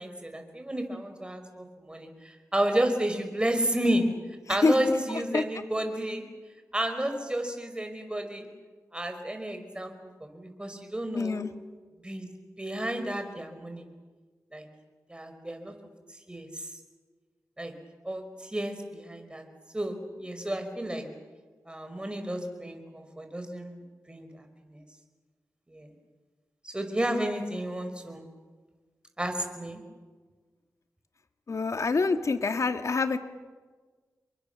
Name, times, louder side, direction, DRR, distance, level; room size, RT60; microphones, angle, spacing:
voice 1, 0.0-4.0 4.5-6.2 6.7-8.5 8.9-9.9 10.2-11.4 12.0-12.3 12.6-13.8 14.5-14.7 15.1-15.7 16.3-16.7 17.6-17.7 18.0-19.4 19.7-21.1 21.7-24.8 25.7-25.9 26.6-28.3 29.2-29.8, right 1 dB, 15° right, 6 dB, 5.3 m, -31 dB
voice 2, 4.5-5.0 5.3-5.4 11.1-11.5 31.5-33.2, left 4 dB, 55° left, 8 dB, 1.8 m, -26 dB
29.5 x 23.0 x 7.0 m, 1.4 s
cardioid pair, 65°, 6 cm